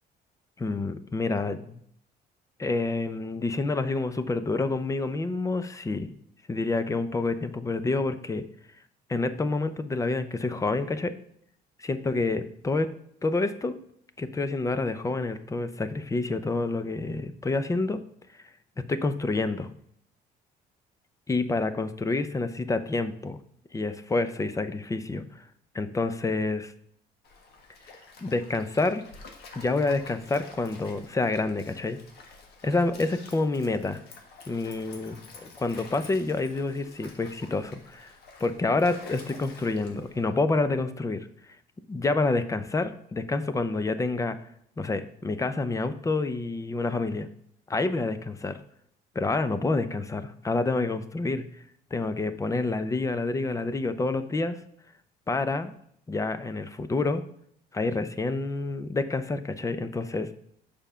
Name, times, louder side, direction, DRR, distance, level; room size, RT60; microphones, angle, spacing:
voice 1, 0.6-1.8 2.6-6.1 6.5-8.5 9.1-11.1 11.8-12.9 13.2-13.8 14.2-18.0 18.9-19.7 21.3-23.4 23.7-25.2 25.7-26.7 28.2-29.0 29.5-32.0 32.6-34.0 34.5-35.2 35.4-38.1 38.4-41.3 41.9-44.4 44.8-47.3 47.7-48.6 49.1-51.4 51.9-54.6 55.3-55.7 56.1-57.2 57.7-60.3, left 3 dB, 20° left, 12 dB, 0.6 m, -28 dB
Stream, 27.2-40.3, left 4 dB, 70° left, 1.6 m, -49 dB
7.1 x 5.2 x 5.6 m, 0.67 s
cardioid pair, 110°, 17 cm